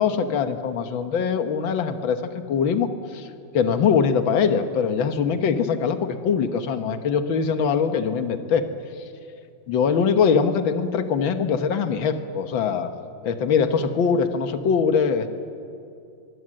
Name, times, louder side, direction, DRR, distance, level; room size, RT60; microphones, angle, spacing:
voice 1, 0.0-3.3 3.5-8.7 9.7-12.9 13.2-15.3, left 6 dB, 80° left, 8 dB, 2.0 m, -22 dB
23.0 x 23.0 x 7.7 m, 2.6 s
omnidirectional pair, 2.1 m